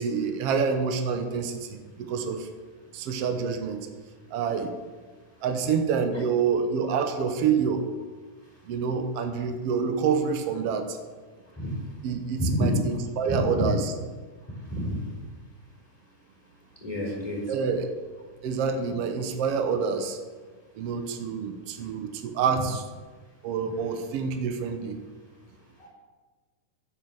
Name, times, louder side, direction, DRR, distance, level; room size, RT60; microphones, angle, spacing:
voice 1, 0.0-2.5 2.9-3.9 4.3-4.7 5.4-7.9 8.7-11.0 12.0-13.9 17.5-17.9 18.4-20.2 20.8-22.8 23.4-25.0, right 6 dB, 85° right, 6 dB, 1.3 m, -27 dB
voice 2, 13.3-13.7 14.6-15.0 16.8-17.4 25.8-25.9, equal, 10° left, -5 dB, 4.3 m, -28 dB
8.6 x 8.2 x 8.1 m, 1.4 s
omnidirectional pair, 4.1 m